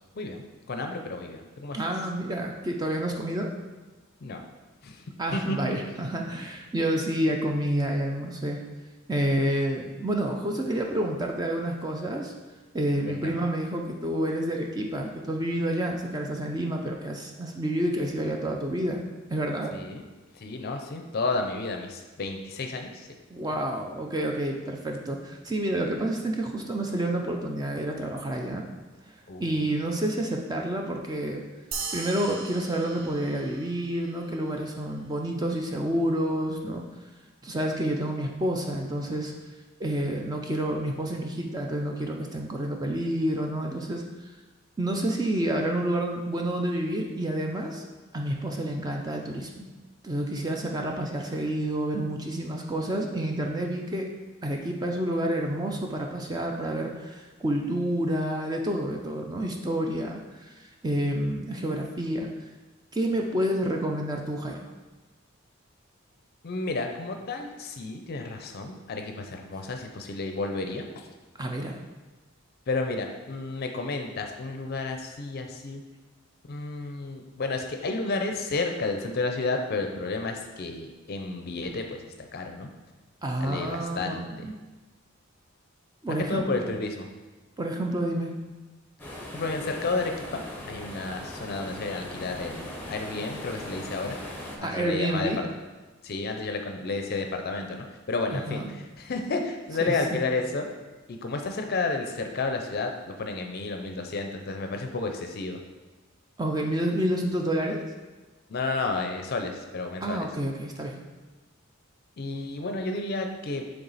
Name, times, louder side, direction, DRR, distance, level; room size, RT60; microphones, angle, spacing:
voice 1, 0.2-1.8 4.2-4.4 4.8-5.0 5.3-5.6 13.1-13.4 19.7-20.0 20.3-23.1 29.3-29.4 66.4-70.8 72.7-75.8 76.5-82.0 82.3-82.7 83.4-84.3 86.3-87.1 89.3-90.4 90.7-94.2 94.6-95.5 96.0-100.7 101.1-105.6 108.5-110.3 112.2-113.6, left 3 dB, 45° left, 4 dB, 0.5 m, -31 dB
voice 2, 1.7-3.5 5.2-8.6 9.1-12.3 12.7-19.0 19.3-19.7 23.3-28.6 29.1-31.4 31.9-36.8 37.4-39.3 39.8-44.3 44.8-47.8 48.1-49.7 50.0-54.1 54.4-62.5 62.9-64.7 71.4-71.8 83.2-84.5 86.0-86.7 87.6-88.3 94.6-95.4 98.3-98.7 99.8-100.0 106.4-107.8 110.0-111.0, right 1 dB, 20° right, 1 dB, 0.4 m, -29 dB
sound 1, 31.7-34.5, right 4 dB, 65° right, 0.6 m, -38 dB
sound 2, 89.0-94.6, left 1 dB, 10° left, 0.7 m, -39 dB
7.0 x 3.4 x 4.0 m, 1.2 s
head